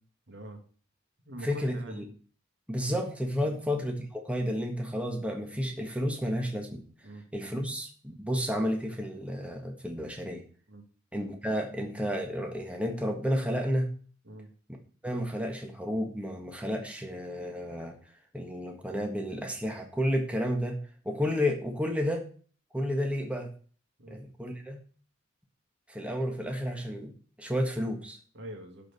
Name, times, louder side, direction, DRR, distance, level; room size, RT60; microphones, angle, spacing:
voice 1, 0.3-0.6 1.3-2.0 3.4-3.6 7.0-7.2 10.7-10.8 14.3-14.5 24.0-24.2 28.3-28.9, right 1 dB, 60° right, 5 dB, 2.3 m, -44 dB
voice 2, 1.4-2.0 2.7-10.4 11.1-13.9 15.0-18.0 18.3-22.3 22.7-23.5 24.1-24.8 25.9-28.2, equal, 5° right, 2 dB, 1.6 m, -31 dB
11.5 x 5.1 x 6.8 m, 0.42 s
head